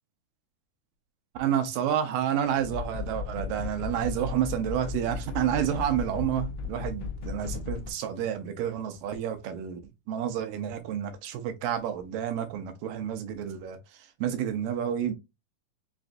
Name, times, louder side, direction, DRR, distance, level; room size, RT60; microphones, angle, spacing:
voice 1, 1.4-9.8 10.1-13.8 14.2-15.1, right 9 dB, 80° right, 2.2 m, -29 dB
sound 1, 2.6-7.9, left 5 dB, 80° left, 1.9 m, -36 dB
5.8 x 2.5 x 2.5 m
omnidirectional pair, 4.1 m